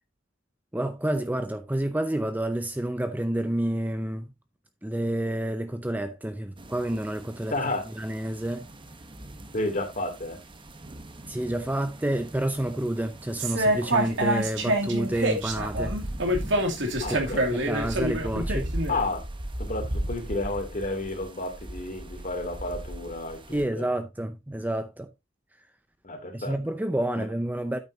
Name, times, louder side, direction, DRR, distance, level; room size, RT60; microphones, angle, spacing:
voice 1, 0.7-4.3 4.8-7.5 8.0-8.6 11.3-15.9 17.1-17.2 17.5-18.7 23.5-25.1 26.3-27.8, right 1 dB, 10° right, 0.6 m, -29 dB
sound 1, 6.6-23.6, right 1 dB, 25° right, 1.0 m, -38 dB
voice 2, 7.5-7.9 9.5-10.4 17.0-17.5 18.9-19.2 19.6-23.9 26.0-26.6 27.2-27.3, left 2 dB, 40° left, 2.8 m, -31 dB
sound 2, 13.4-18.9, right 1 dB, 65° right, 2.4 m, -26 dB
9.0 x 8.7 x 2.7 m
head